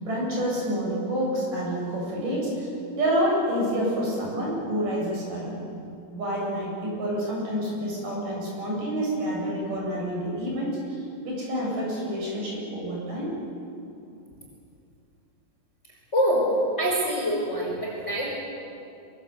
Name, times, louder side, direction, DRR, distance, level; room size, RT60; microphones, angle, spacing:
voice 1, 0.0-2.7 3.0-5.6 6.1-13.3, equal, 40° right, -4 dB, 9.3 m, -28 dB
voice 2, 16.1-16.5 16.8-18.3, equal, 15° left, -2 dB, 5.1 m, -25 dB
27.5 x 24.0 x 8.5 m, 2.6 s
omnidirectional pair, 5.8 m